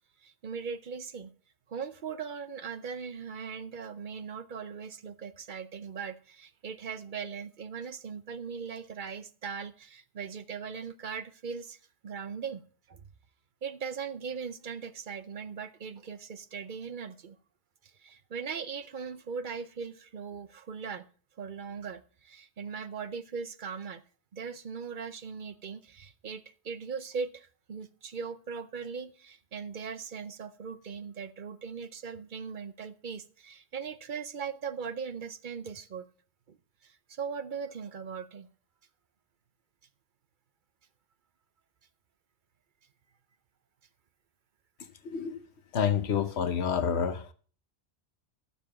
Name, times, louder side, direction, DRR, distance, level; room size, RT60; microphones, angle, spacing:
voice 1, 0.2-1.3 1.7-11.8 12.0-12.6 12.9-13.0 13.6-17.4 18.0-21.1 21.4-24.0 24.3-36.1 36.5-36.6 36.8-38.5, right 6 dB, 50° right, 0.7 m, -39 dB
voice 2, 45.0-45.4 45.7-47.3, left 7 dB, 70° left, 1.1 m, -28 dB
12.0 x 7.0 x 5.7 m
omnidirectional pair, 1.1 m